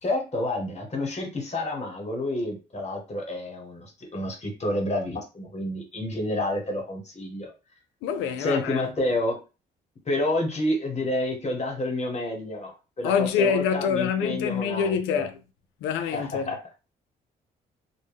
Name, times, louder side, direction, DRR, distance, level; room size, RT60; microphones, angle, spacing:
voice 1, 0.0-7.5 8.4-9.4 10.0-15.3 16.1-16.6, left 1 dB, 35° left, 1.0 m, -29 dB
voice 2, 8.0-8.9 13.0-15.3 15.8-16.5, left 7 dB, 80° left, 0.4 m, -26 dB
2.1 x 2.0 x 3.4 m
supercardioid pair, 60°, 20 cm